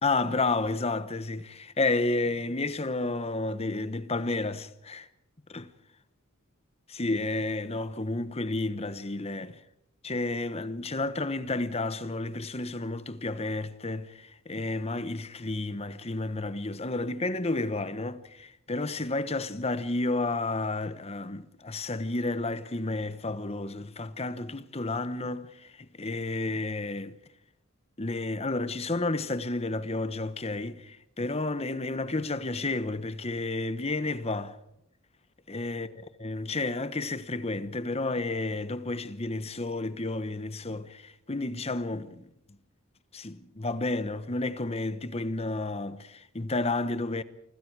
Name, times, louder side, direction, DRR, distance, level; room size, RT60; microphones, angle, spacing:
voice 1, 0.0-5.1 5.5-5.7 6.9-9.6 10.0-27.2 28.0-34.6 35.5-35.9 36.2-42.3 43.1-47.2, left 2 dB, 30° left, 1.1 m, -31 dB
28.0 x 25.5 x 4.8 m
head